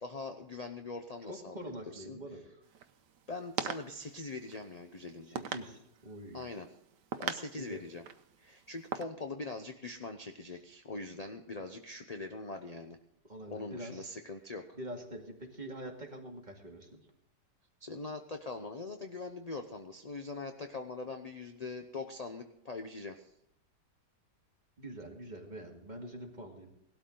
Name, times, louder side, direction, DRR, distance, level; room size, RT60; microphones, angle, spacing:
voice 1, 0.0-1.6 1.9-2.2 3.3-5.4 6.3-6.7 7.2-8.0 8.4-13.0 13.5-14.8 17.8-23.3, left 3 dB, 40° left, 6 dB, 0.6 m, -42 dB
voice 2, 1.3-2.6 5.3-6.4 7.6-7.8 13.2-14.1 14.7-17.0 24.8-26.7, right 1 dB, 25° right, 0 dB, 2.4 m, -45 dB
sound 1, 2.6-9.0, right 8 dB, 90° right, 1.4 m, -42 dB
18.0 x 13.0 x 3.9 m, 0.78 s
omnidirectional pair, 1.8 m